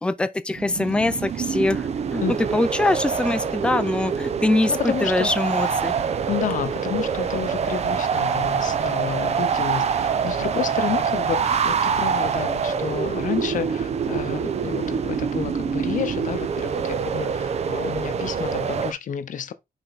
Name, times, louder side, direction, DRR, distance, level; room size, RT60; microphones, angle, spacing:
voice 1, 0.0-5.9, left 2 dB, 5° left, 0.4 m, -23 dB
sound 1, 0.6-18.9, right 6 dB, 40° right, 0.6 m, -25 dB
voice 2, 4.7-5.3 6.3-19.5, left 9 dB, 55° left, 0.7 m, -30 dB
5.6 x 4.3 x 4.0 m
wide cardioid pair, 175°, 16 cm